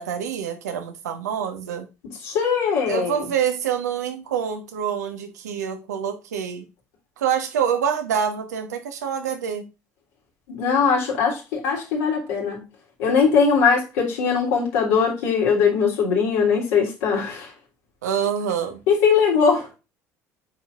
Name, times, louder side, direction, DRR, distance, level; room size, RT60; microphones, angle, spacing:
voice 1, 0.0-1.9 2.9-6.6 7.2-9.7 18.0-18.8, right 8 dB, 85° right, 1.3 m, -26 dB
voice 2, 2.2-3.2 10.5-12.6 13.0-17.5 18.9-19.7, left 6 dB, 75° left, 3.2 m, -20 dB
8.8 x 4.9 x 2.5 m
hypercardioid pair, 65°, 9 cm